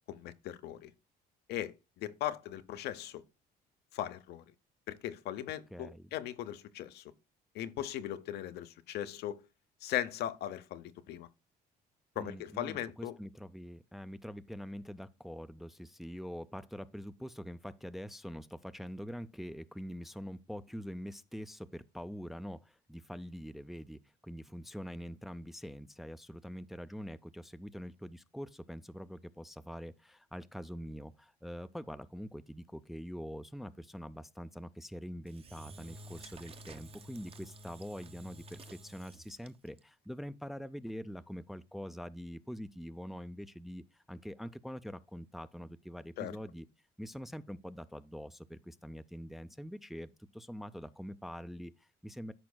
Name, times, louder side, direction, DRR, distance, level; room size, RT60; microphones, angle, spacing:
voice 1, 0.1-0.9 1.5-3.2 3.9-4.4 4.9-7.0 7.5-9.4 9.8-11.3 12.2-13.2 46.2-46.4, left 12 dB, 75° left, 0.7 m, -38 dB
voice 2, 5.7-6.1 12.2-46.6 47.0-52.3, equal, ahead, 0.4 m, -44 dB
Engine / Drill, 35.3-39.8, right 2 dB, 35° right, 0.7 m, -51 dB
13.0 x 5.1 x 2.2 m
cardioid pair, 110°, 17 cm